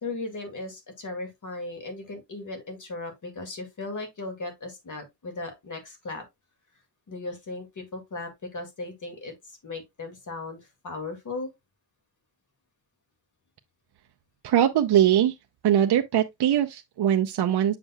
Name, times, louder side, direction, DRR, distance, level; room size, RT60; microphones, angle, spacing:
voice 1, 0.0-6.2 7.1-11.5, left 3 dB, 45° left, 2.1 m, -37 dB
voice 2, 14.4-15.3 15.6-17.8, right 10 dB, 75° right, 0.6 m, -21 dB
7.3 x 5.9 x 2.3 m
wide cardioid pair, 170°, 41 cm